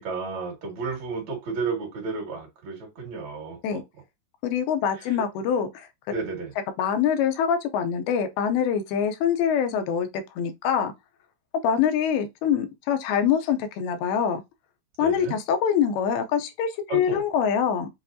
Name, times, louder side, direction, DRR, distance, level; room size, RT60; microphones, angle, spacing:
voice 1, 0.0-3.8 5.1-5.2 6.1-6.5 15.0-15.4 16.9-17.2, right 4 dB, 55° right, 2.8 m, -32 dB
voice 2, 4.4-5.9 6.8-10.9 11.6-14.4 15.0-17.9, left 8 dB, 85° left, 2.6 m, -24 dB
7.6 x 2.6 x 2.6 m
omnidirectional pair, 4.4 m